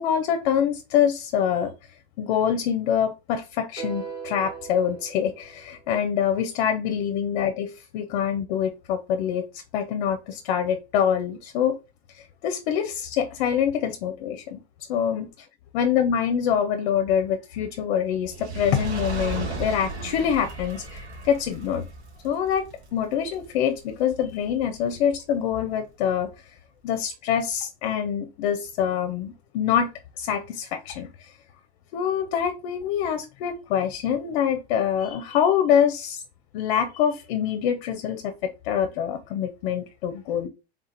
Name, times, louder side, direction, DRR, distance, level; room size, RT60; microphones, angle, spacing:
voice 1, 0.0-1.7 2.2-11.8 12.1-14.6 14.9-15.3 15.7-21.9 22.2-22.7 22.9-26.3 26.8-31.3 31.9-36.2 36.5-40.5, left 8 dB, 55° left, 0.6 m, -25 dB
sound 1, 3.8-6.1, right 6 dB, 55° right, 2.3 m, -38 dB
Fire, 18.2-24.6 25.3-25.4, right 3 dB, 85° right, 1.7 m, -35 dB
3.6 x 2.4 x 4.3 m
hypercardioid pair, 125°, 33 cm